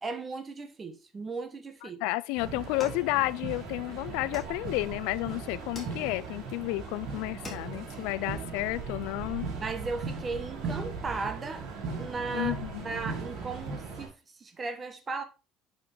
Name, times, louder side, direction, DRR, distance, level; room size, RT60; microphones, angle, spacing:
voice 1, 0.0-2.0 9.6-11.7 12.0-12.5 12.8-14.1 14.4-15.2, right 4 dB, 20° right, 0.9 m, -36 dB
voice 2, 1.8-9.5 12.3-12.9, left 19 dB, 90° left, 0.4 m, -31 dB
sound 1, 2.4-14.1, right 4 dB, 60° right, 2.8 m, -38 dB
sound 2, 2.8-3.7 4.3-5.1 5.7-6.4 6.9-7.0 7.3-8.0, left 2 dB, 15° left, 1.7 m, -46 dB
9.8 x 5.1 x 3.3 m
cardioid pair, 165°, 0 cm